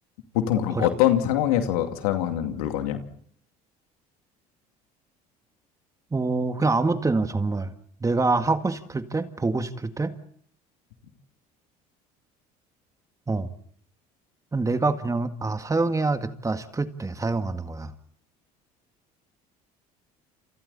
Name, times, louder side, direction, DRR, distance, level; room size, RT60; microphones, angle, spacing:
voice 1, 0.3-3.0, left 11 dB, 90° left, 5 dB, 2.5 m, -23 dB
voice 2, 6.1-7.7 8.0-10.1 13.3-13.5 14.5-17.9, right 3 dB, 20° right, 8 dB, 1.8 m, -25 dB
29.5 x 27.5 x 4.2 m, 0.64 s
supercardioid pair, 85°, 18 cm